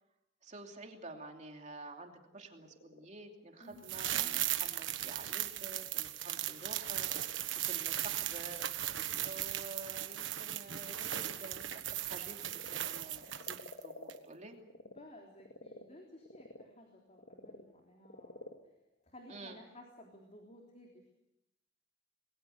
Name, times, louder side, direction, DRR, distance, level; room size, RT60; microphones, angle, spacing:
voice 1, 0.4-8.8 9.1-14.6 19.3-19.6, right 2 dB, 40° right, 3 dB, 2.8 m, -50 dB
Frog, 2.2-15.0 15.4-20.0, left 2 dB, 65° left, 2.2 m, -55 dB
voice 2, 3.6-4.0 14.2-14.6 14.9-18.5 19.0-21.1, left 1 dB, 35° left, 1 dB, 3.6 m, -56 dB
sound 1, 3.8-13.8 14.1-14.2, right 12 dB, 80° right, 1.4 m, -37 dB
27.5 x 21.5 x 6.7 m, 0.85 s
head